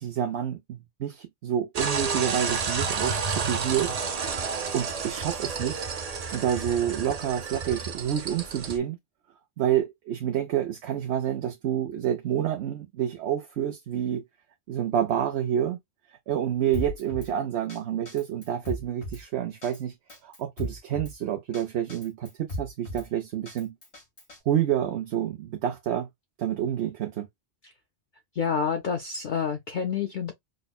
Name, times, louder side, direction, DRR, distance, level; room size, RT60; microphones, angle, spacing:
voice 1, 0.0-4.0 4.7-5.8 6.3-9.0 9.6-14.2 14.7-15.8 16.3-19.9 20.2-23.7 24.5-26.1 26.4-27.3, right 10 dB, 80° right, 0.9 m, -28 dB
sound 1, 1.7-8.8, right 5 dB, 45° right, 0.6 m, -30 dB
Drum kit, 16.7-17.3 17.7-17.8 18.1-19.2 19.6-19.8 20.1-21.1 21.5-21.6 21.9-23.1 23.5-24.4, left 1 dB, 85° left, 2.3 m, -36 dB
voice 2, 28.4-30.3, left 6 dB, 55° left, 0.7 m, -28 dB
5.2 x 2.1 x 2.3 m
omnidirectional pair, 1.1 m